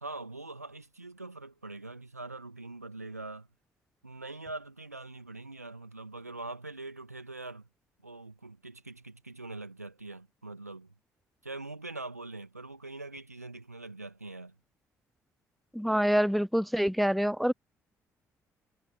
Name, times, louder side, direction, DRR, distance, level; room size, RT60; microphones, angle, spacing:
voice 1, 0.0-3.5 4.0-7.7 8.0-10.9 11.4-14.6, right 2 dB, 85° right, 2.2 m, -43 dB
voice 2, 15.7-17.5, equal, ahead, 0.4 m, -26 dB
figure-of-eight pair, 45°, 8 cm